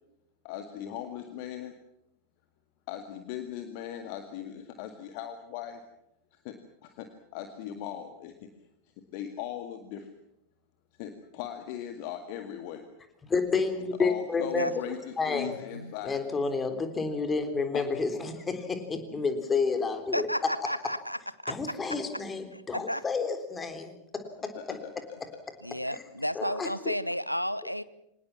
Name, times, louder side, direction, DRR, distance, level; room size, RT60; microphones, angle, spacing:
voice 1, 0.4-1.7 2.9-5.8 6.3-8.5 9.1-10.1 11.0-12.8 14.0-16.2 17.7-17.8 24.6-25.2 25.8-25.9, left 10 dB, 45° left, 7 dB, 1.9 m, -39 dB
voice 2, 13.2-14.7 15.2-15.6 16.0-20.3 21.5-24.8 25.2-25.3 25.9-26.0 26.4-26.9, left 4 dB, 15° left, 7 dB, 3.6 m, -30 dB
voice 3, 15.4-15.9 20.1-21.2 21.4-21.5 22.5-23.0 25.6-27.8, equal, 90° left, 17 dB, 0.8 m, -32 dB
25.5 x 19.5 x 7.4 m, 0.81 s
figure-of-eight pair, 90°, 0 cm